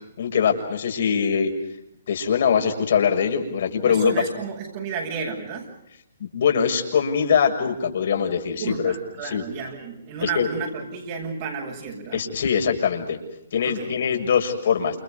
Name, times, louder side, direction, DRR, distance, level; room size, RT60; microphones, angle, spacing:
voice 1, 0.2-1.5 2.1-4.1 6.3-8.9 9.2-9.4 10.2-10.5 12.1-13.2 13.5-15.0, left 7 dB, 60° left, 4 dB, 6.8 m, -22 dB
voice 2, 3.8-5.7 8.6-12.2 13.6-13.9, right 5 dB, 45° right, -3 dB, 7.7 m, -32 dB
29.5 x 29.5 x 5.3 m, 0.81 s
hypercardioid pair, 140°, 0 cm